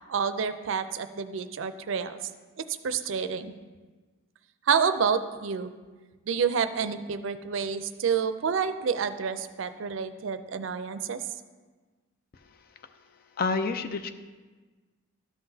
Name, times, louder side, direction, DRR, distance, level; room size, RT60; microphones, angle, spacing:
voice 1, 0.1-2.2 2.8-3.5 4.7-5.7 6.3-11.2, right 6 dB, 70° right, 11 dB, 0.4 m, -28 dB
voice 2, 13.4-14.1, left 4 dB, 50° left, 9 dB, 0.4 m, -28 dB
12.5 x 5.8 x 2.7 m, 1.3 s
head